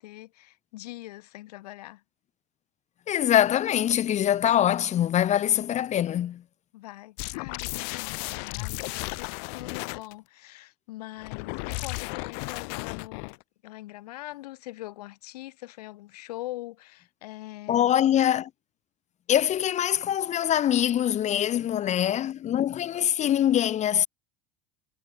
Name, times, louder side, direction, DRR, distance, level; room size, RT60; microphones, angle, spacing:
voice 1, 0.0-2.0 6.7-17.9 21.4-21.9, left 17 dB, 85° left, 3.5 m, -42 dB
voice 2, 3.1-6.4 17.7-18.5 19.3-24.1, left 11 dB, 35° left, 1.4 m, -23 dB
sound 1, 7.2-10.1 11.2-13.4, left 40 dB or more, 65° left, 0.7 m, -34 dB
supercardioid pair, 115°, 19 cm